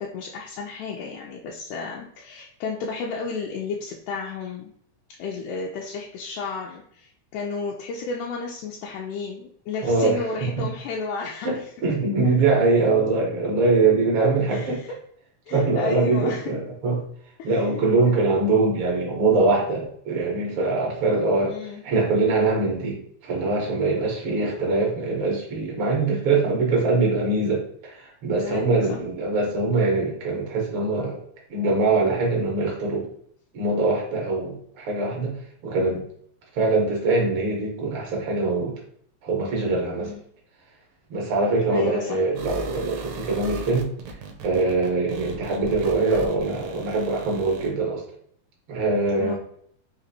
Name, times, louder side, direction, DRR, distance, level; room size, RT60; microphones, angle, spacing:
voice 1, 0.0-4.7 5.2-11.6 12.2-12.3 14.5-15.0 15.5-16.4 21.5-21.8 28.4-29.0 40.0-40.2 41.7-42.2 49.1-49.3, left 4 dB, 80° left, -2 dB, 1.9 m, -32 dB
voice 2, 9.8-10.7 11.4-14.8 15.5-17.0 17.4-31.2 31.5-33.1 33.5-35.4 35.6-36.0 36.5-38.7 39.2-40.1 41.1-43.9 44.4-48.0 48.7-49.3, right 3 dB, 55° right, -2 dB, 1.6 m, -23 dB
sound 1, 42.4-47.7, right 2 dB, 80° right, 1.9 m, -37 dB
5.1 x 2.9 x 2.7 m, 0.64 s
omnidirectional pair, 3.5 m